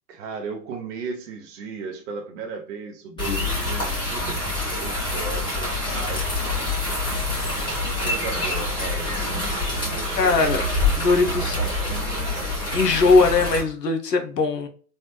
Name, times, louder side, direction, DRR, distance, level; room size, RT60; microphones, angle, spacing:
voice 1, 0.1-7.0 7.8-10.5 11.1-13.0, right 5 dB, 50° right, 2 dB, 0.6 m, -37 dB
sound 1, 3.2-13.6, left 2 dB, 10° left, 1.3 m, -26 dB
voice 2, 10.2-10.6 11.0-11.6 12.7-14.7, left 3 dB, 85° left, 5 dB, 0.8 m, -20 dB
3.3 x 2.3 x 2.8 m, 0.42 s
figure-of-eight pair, 110°, 47 cm